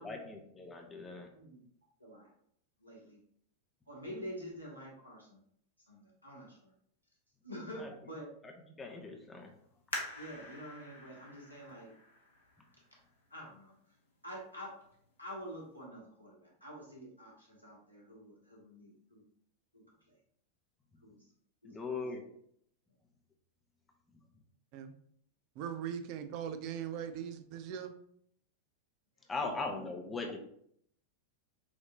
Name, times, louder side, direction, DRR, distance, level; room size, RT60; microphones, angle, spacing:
voice 1, 0.0-1.3 7.8-7.9 8.8-9.5 21.6-22.2 29.3-30.4, left 3 dB, 15° left, 3 dB, 0.7 m, -39 dB
voice 2, 1.3-1.6 2.0-2.3 2.8-3.2 3.9-5.4 5.9-6.7 7.4-8.3 10.1-11.9 13.3-13.7 14.2-14.8 15.2-19.2 19.7-20.2 21.0-21.2 21.6-22.1 29.4-29.5 30.0-30.1, equal, 90° right, -4 dB, 1.5 m, -47 dB
sound 1, 9.9-13.3 13.9-14.0 14.6-15.0 15.4-15.5, left 2 dB, 70° left, 1.1 m, -45 dB
voice 3, 25.6-27.9, right 8 dB, 45° right, 9 dB, 0.4 m, -40 dB
5.7 x 2.7 x 2.8 m, 0.68 s
figure-of-eight pair, 90°, 0 cm